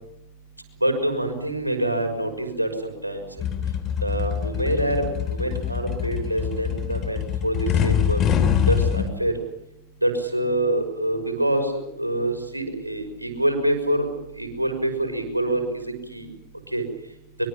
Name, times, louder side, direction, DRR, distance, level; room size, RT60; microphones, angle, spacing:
voice 1, 0.8-3.3 4.0-8.2 8.7-9.3 10.0-11.7 12.0-14.1 14.4-16.3 16.7-16.8, right 1 dB, 85° right, 5 dB, 6.1 m, -25 dB
sound 1, 3.4-9.1, left 9 dB, 30° left, 3.1 m, -24 dB
24.0 x 23.5 x 7.5 m, 0.81 s
figure-of-eight pair, 90°, 0 cm